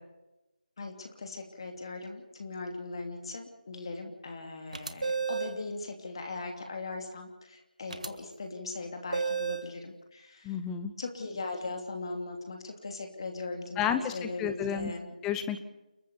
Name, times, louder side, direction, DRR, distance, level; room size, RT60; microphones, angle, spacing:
voice 1, 0.8-10.6 11.0-15.1, left 3 dB, 35° left, 3 dB, 3.0 m, -39 dB
sound 1, 4.7-5.6 7.9-8.1 9.1-9.7, right 5 dB, 55° right, 1.6 m, -32 dB
voice 2, 10.4-10.9 13.8-14.9 15.2-15.6, left 8 dB, 5° left, 10 dB, 0.9 m, -31 dB
29.5 x 14.0 x 6.9 m, 0.99 s
figure-of-eight pair, 165°, 5 cm